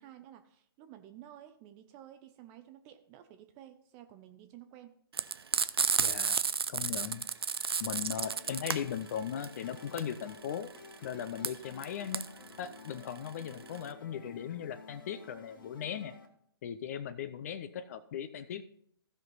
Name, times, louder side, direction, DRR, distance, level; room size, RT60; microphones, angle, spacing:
voice 1, 0.0-4.9 8.1-8.3, right 11 dB, 25° right, 8 dB, 0.6 m, -53 dB
Frying (food), 5.1-13.9, right 6 dB, 70° right, 0.6 m, -32 dB
voice 2, 6.0-6.4 6.7-7.2 7.8-10.7 11.0-12.2 12.6-16.1 16.6-18.6, left 9 dB, 40° left, 12 dB, 0.6 m, -38 dB
sound 1, 8.3-16.3, left 4 dB, 55° left, 1.8 m, -53 dB
15.5 x 5.9 x 4.0 m, 0.63 s
figure-of-eight pair, 130°, 13 cm